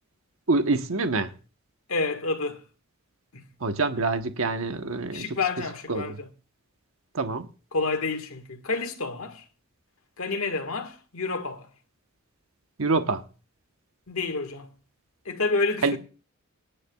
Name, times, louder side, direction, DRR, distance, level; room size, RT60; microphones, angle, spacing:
voice 1, 0.5-1.3 3.6-5.4 5.9-6.2 7.1-7.5 12.8-13.2 15.8-16.0, right 3 dB, 80° right, 1.1 m, -26 dB
voice 2, 1.9-2.6 3.3-3.4 5.1-6.3 7.7-9.4 10.2-11.7 14.1-14.7 15.2-16.0, left 3 dB, 90° left, 1.7 m, -29 dB
25.5 x 10.0 x 2.3 m
head